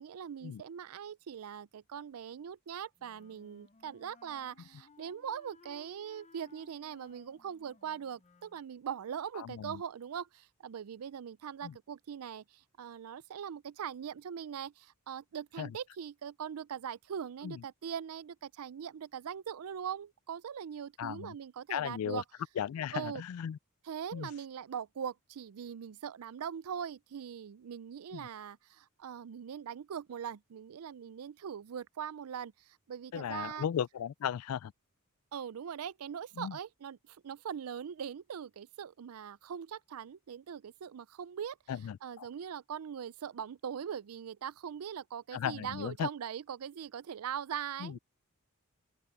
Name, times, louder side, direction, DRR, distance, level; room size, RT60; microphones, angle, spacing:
voice 1, 0.0-22.2 22.9-23.2 23.8-33.7 35.3-41.6 42.0-48.0, right 8 dB, 75° right, 0.4 m, -41 dB
Wind instrument woodwind instrument, 3.0-8.6, left 4 dB, 30° left, 0.7 m, -62 dB
voice 2, 9.4-9.8 11.6-11.8 15.6-15.8 17.4-17.6 21.0-21.3 21.7-22.2 22.6-23.6 24.1-24.3 28.1-28.3 33.1-34.7 36.4-36.6 41.7-42.3 45.3-46.1 47.8-48.0, left 9 dB, 70° left, 0.3 m, -36 dB
open air
head